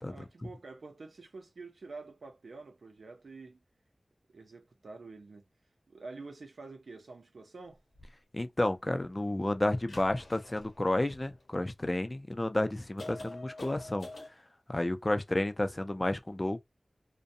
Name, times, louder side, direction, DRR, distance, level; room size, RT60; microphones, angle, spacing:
voice 1, 0.1-3.6 4.3-5.4 5.9-7.8, right 3 dB, 90° right, 0.6 m, -48 dB
sound 1, 8.0-8.1 9.8-11.7 12.3-12.4 13.0-14.3, left 2 dB, 85° left, 0.9 m, -47 dB
voice 2, 8.3-14.1 14.7-16.6, left 1 dB, 35° left, 0.5 m, -31 dB
2.6 x 2.2 x 2.6 m
cardioid pair, 40°, 0 cm